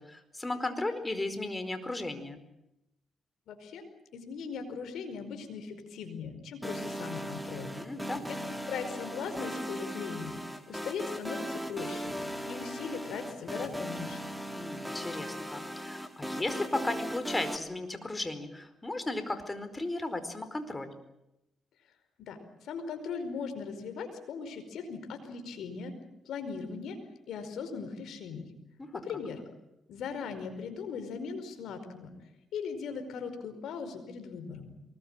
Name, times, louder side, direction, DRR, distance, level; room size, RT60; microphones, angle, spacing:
voice 1, 0.0-2.4 7.7-8.3 14.5-20.9 28.8-29.0, left 2 dB, 20° left, 10 dB, 4.5 m, -35 dB
voice 2, 3.5-7.7 8.3-8.4 8.7-10.4 10.7-12.1 12.5-14.2 22.2-25.9 26.2-27.0 27.3-28.5 29.0-29.4 29.9-32.1 32.5-34.7, left 5 dB, 75° left, 8 dB, 5.0 m, -39 dB
sound 1, 6.6-17.6, equal, ahead, 3.4 m, -38 dB
23.5 x 21.0 x 9.0 m, 0.90 s
supercardioid pair, 60°, 0 cm